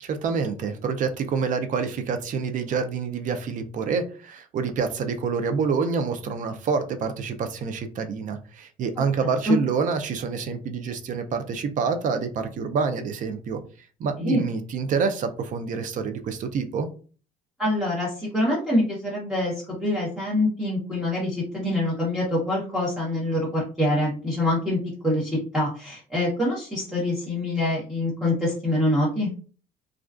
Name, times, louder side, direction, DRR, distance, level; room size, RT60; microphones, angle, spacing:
voice 1, 0.0-13.6 14.0-16.9, right 5 dB, 50° right, 0.4 m, -27 dB
voice 2, 17.6-19.5 19.8-29.3, left 1 dB, 5° right, 0.9 m, -25 dB
2.3 x 2.2 x 2.4 m
cardioid pair, 110°, 17 cm